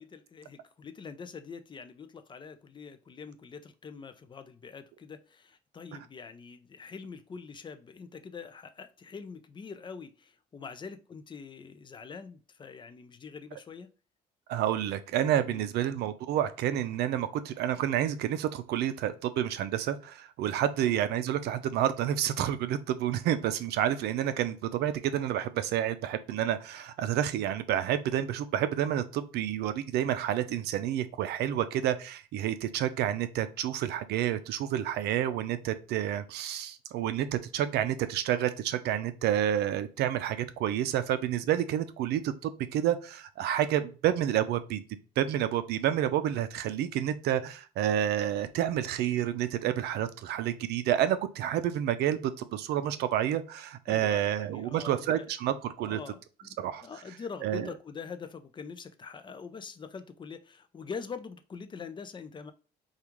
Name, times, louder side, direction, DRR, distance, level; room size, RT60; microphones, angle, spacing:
voice 1, 0.0-13.9 15.5-15.7 20.8-20.9 53.9-55.2 55.8-62.5, left 5 dB, 30° left, 0.5 m, -44 dB
voice 2, 14.5-44.8 45.2-56.0 56.6-56.8 57.4-57.7, right 11 dB, 75° right, 0.5 m, -29 dB
4.9 x 2.4 x 3.0 m
cardioid pair, 110°, 17 cm